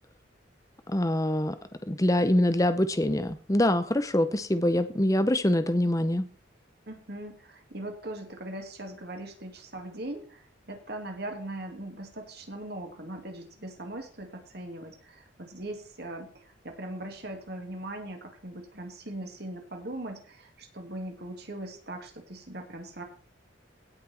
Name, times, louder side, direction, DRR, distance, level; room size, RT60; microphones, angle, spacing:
voice 1, 0.9-1.5 1.9-6.2, left 1 dB, 15° left, 10 dB, 0.7 m, -24 dB
voice 2, 6.9-23.0, right 1 dB, 55° right, 3 dB, 2.6 m, -40 dB
17.0 x 6.0 x 4.4 m, 0.41 s
head